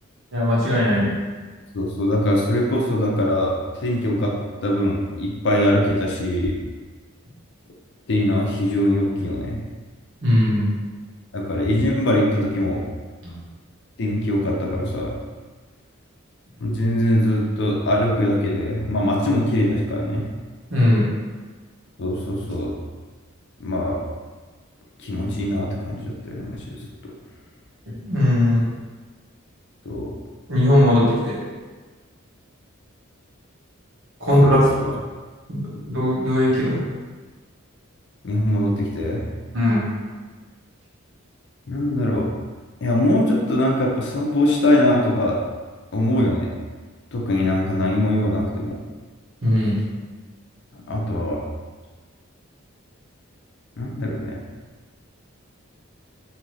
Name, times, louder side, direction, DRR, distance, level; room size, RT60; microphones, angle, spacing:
voice 1, 0.3-1.1 10.2-10.6 20.7-21.0 28.0-28.6 30.5-31.4 34.2-34.9 35.5-35.6 35.9-36.8 39.5-39.8 49.4-49.7, left 1 dB, 60° right, -8 dB, 1.1 m, -18 dB
voice 2, 1.7-3.5 3.8-4.4 4.6-6.6 8.1-9.6 11.3-12.8 14.0-15.2 16.6-20.2 22.0-22.7 23.6-24.0 25.0-26.8 29.9-30.1 34.4-34.9 38.2-39.3 41.7-42.3 42.8-45.4 45.9-46.5 47.1-48.8 50.9-51.4 53.8-54.4, left 1 dB, 55° left, -1 dB, 0.5 m, -22 dB
2.8 x 2.6 x 3.1 m, 1.4 s
head